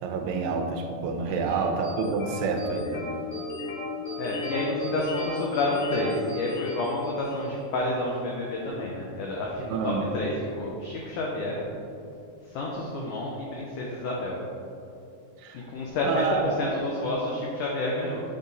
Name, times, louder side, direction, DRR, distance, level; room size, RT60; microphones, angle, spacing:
voice 1, 0.0-3.2 9.7-10.0 15.4-15.6 16.0-16.5, right 4 dB, 85° right, 3 dB, 2.6 m, -28 dB
voice 2, 1.2-1.7 4.2-11.6 12.5-14.4 15.5-18.2, left 1 dB, 90° left, -2 dB, 1.8 m, -30 dB
sound 1, 1.8-7.6, left 3 dB, 50° left, 1.3 m, -35 dB
8.9 x 3.7 x 4.0 m, 2.6 s
omnidirectional pair, 4.5 m